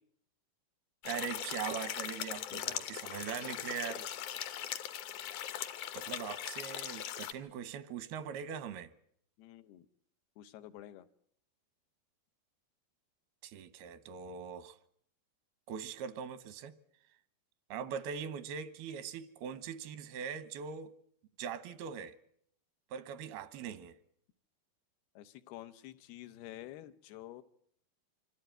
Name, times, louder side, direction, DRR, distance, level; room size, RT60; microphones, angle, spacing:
sound 1, 1.0-7.3, left 11 dB, 65° left, 2.1 m, -40 dB
voice 1, 1.0-4.1 5.9-8.9 13.4-14.8 15.7-16.7 17.7-21.0 21.4-22.2 22.9-24.0, right 7 dB, 85° right, 3.0 m, -41 dB
voice 2, 9.4-9.8 10.4-11.1 25.2-27.4, left 14 dB, 85° left, 3.0 m, -49 dB
25.5 x 14.5 x 9.2 m
omnidirectional pair, 4.4 m